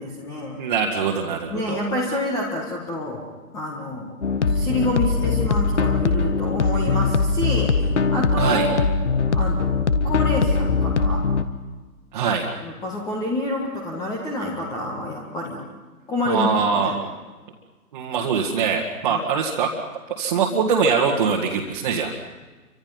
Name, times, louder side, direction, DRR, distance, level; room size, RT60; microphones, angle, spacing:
voice 1, 0.0-0.6 1.5-3.2 3.5-4.2 4.5-7.8 8.1-8.8 9.3-9.7 10.0-11.2 12.6-15.6 16.1-17.0 19.1-19.2, left 1 dB, 5° left, -1 dB, 1.6 m, -28 dB
voice 2, 0.6-1.8 8.4-8.7 12.1-12.5 16.3-16.9 17.9-19.7 20.1-22.1, right 6 dB, 25° right, -1 dB, 2.0 m, -22 dB
sound 1, 4.2-11.4, left 4 dB, 45° left, 1.6 m, -21 dB
29.5 x 25.0 x 5.7 m, 1.3 s
figure-of-eight pair, 140°, 47 cm